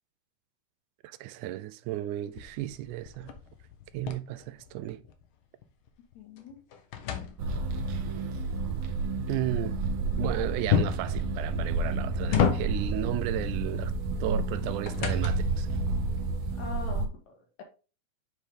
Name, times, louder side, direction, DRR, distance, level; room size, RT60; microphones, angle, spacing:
voice 1, 1.0-3.3 3.9-5.0 9.3-9.8 10.2-13.9 14.2-15.7, right 14 dB, 85° right, 2.0 m, -34 dB
sound 1, 2.3-5.2 5.6-7.9 10.7-11.2 11.8-13.0 14.3-15.6, left 8 dB, 80° left, 1.1 m, -31 dB
voice 2, 6.1-6.6 16.5-17.6, left 5 dB, 65° left, 2.8 m, -42 dB
sound 2, 7.4-17.1, right 3 dB, 65° right, 1.8 m, -30 dB
7.3 x 4.9 x 3.6 m
omnidirectional pair, 3.6 m